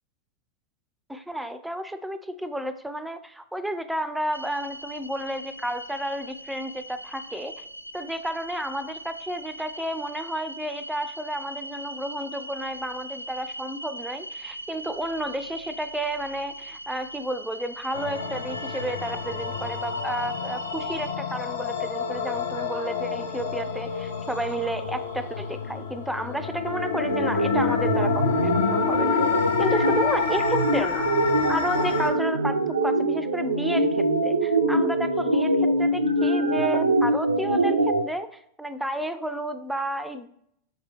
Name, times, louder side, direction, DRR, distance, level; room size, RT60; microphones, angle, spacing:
voice 1, 1.1-7.7 7.9-29.2 29.6-31.1 31.5-40.3, right 1 dB, 5° right, 11 dB, 0.4 m, -31 dB
sound 1, 4.3-21.1, right 1 dB, 85° left, 0.4 m, -40 dB
sound 2, 17.9-32.1, left 5 dB, 65° left, 0.8 m, -28 dB
sound 3, 26.9-38.0, right 1 dB, 80° right, 0.6 m, -24 dB
6.4 x 4.7 x 3.3 m, 0.71 s
figure-of-eight pair, 90°, 0 cm